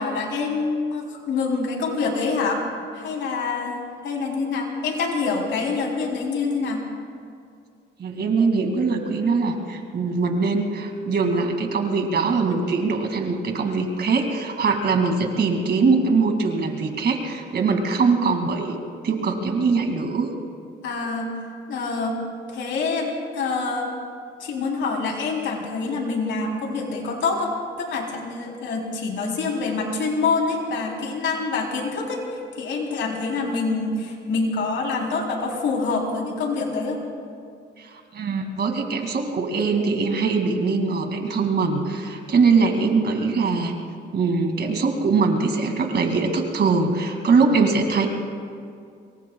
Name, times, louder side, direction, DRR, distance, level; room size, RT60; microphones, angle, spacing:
voice 1, 0.0-2.6 2.9-6.8 15.8-16.1 20.8-21.3 21.7-22.2 22.5-23.9 24.4-32.2 32.6-37.0, left 4 dB, 75° left, 0 dB, 3.6 m, -26 dB
voice 2, 8.0-18.8 19.0-20.3 37.8-43.7 44.1-48.1, right 4 dB, 55° right, 4 dB, 2.3 m, -22 dB
25.0 x 22.5 x 2.3 m, 2.3 s
cardioid pair, 90°, 20 cm